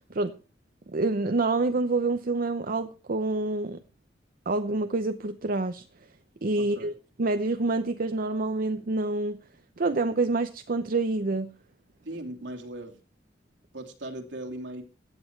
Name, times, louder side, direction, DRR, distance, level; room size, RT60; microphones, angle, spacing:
voice 1, 0.9-3.8 4.5-5.8 6.4-6.9 7.2-9.4 9.8-11.5, right 3 dB, 50° right, 9 dB, 0.7 m, -27 dB
voice 2, 6.6-6.9 12.0-13.0 13.7-14.8, right 1 dB, 75° right, 2 dB, 2.6 m, -38 dB
15.5 x 9.5 x 4.5 m, 0.35 s
head